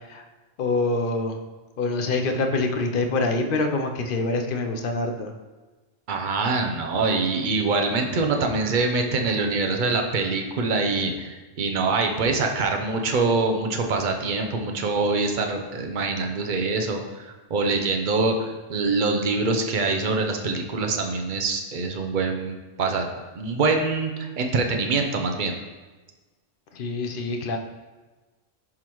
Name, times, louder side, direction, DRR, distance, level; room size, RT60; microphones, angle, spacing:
voice 1, 0.6-1.4 1.8-5.3 26.7-27.6, left 3 dB, 55° left, 4 dB, 0.6 m, -25 dB
voice 2, 6.1-23.1 23.4-25.5, right 3 dB, 50° right, 3 dB, 0.6 m, -24 dB
10.5 x 3.7 x 3.0 m, 1.2 s
omnidirectional pair, 1.4 m